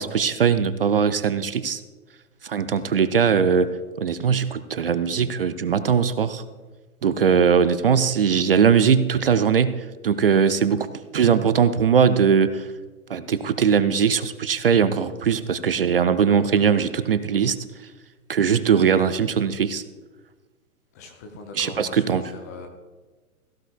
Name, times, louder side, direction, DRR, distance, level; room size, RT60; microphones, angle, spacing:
voice 1, 0.0-1.8 2.4-3.7 4.0-6.4 7.0-10.9 11.1-12.7 13.1-17.6 18.3-19.8 21.5-22.2, right 7 dB, 40° right, 13 dB, 0.5 m, -20 dB
voice 2, 20.9-22.7, left 4 dB, 10° left, 2 dB, 0.5 m, -41 dB
16.5 x 15.5 x 2.2 m, 1.3 s
figure-of-eight pair, 120°, 45 cm